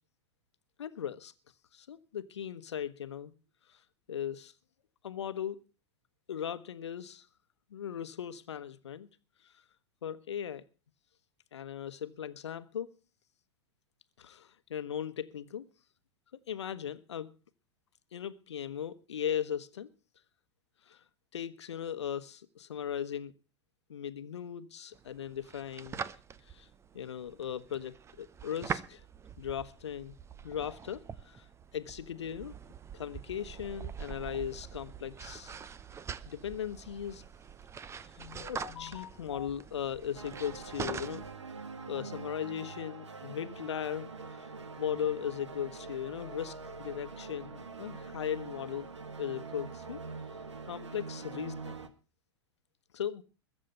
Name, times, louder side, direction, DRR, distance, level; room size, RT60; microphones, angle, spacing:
voice 1, 0.8-1.3 1.7-3.3 3.7-3.8 4.1-4.5 5.0-5.6 6.3-7.3 7.7-9.1 10.0-10.6 11.5-12.9 14.2-15.7 16.5-17.3 18.1-19.9 20.9-21.0 21.3-23.3 23.9-26.0 26.5-26.7 26.9-29.0 29.4-30.2 30.4-31.5 31.7-32.5 32.9-35.6 36.3-37.2 38.2-41.3 41.9-44.5 44.8-48.9 49.2-50.0 50.7-51.8 52.9-53.2, left 9 dB, 75° left, 1.2 m, -38 dB
sound 1, 24.9-41.4, right 7 dB, 20° right, 0.8 m, -44 dB
sound 2, 40.1-51.9, right 4 dB, 85° right, 1.6 m, -44 dB
21.5 x 7.6 x 5.4 m
figure-of-eight pair, 100°, 15 cm